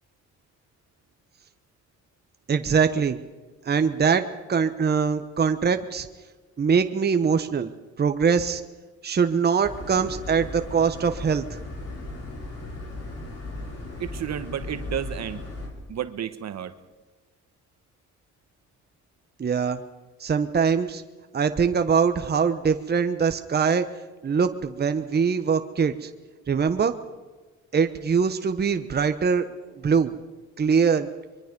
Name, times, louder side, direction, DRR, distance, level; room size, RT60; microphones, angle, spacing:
voice 1, 2.5-3.2 3.6-6.1 6.6-7.7 8.0-8.6 9.0-11.6 19.4-19.8 20.2-21.0 21.3-23.8 24.2-26.1 26.5-26.9 27.7-30.1 30.6-31.1, right 6 dB, 35° right, 8 dB, 1.1 m, -23 dB
sound 1, 9.6-15.7, left 2 dB, 55° left, 6.7 m, -37 dB
voice 2, 14.0-15.5 15.9-16.7, right 9 dB, 60° right, 11 dB, 1.4 m, -31 dB
24.0 x 22.5 x 5.3 m, 1.3 s
cardioid pair, 90°, 30 cm